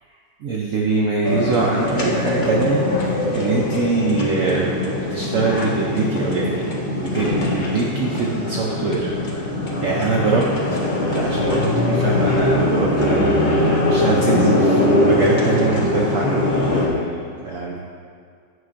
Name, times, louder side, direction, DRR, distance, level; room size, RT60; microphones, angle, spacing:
voice 1, 0.4-9.5 9.8-17.8, right 3 dB, 70° right, -3 dB, 0.7 m, -23 dB
sound 1, 1.2-16.9, left 1 dB, 45° left, 0.6 m, -21 dB
9.6 x 5.9 x 2.5 m, 2.2 s
omnidirectional pair, 2.0 m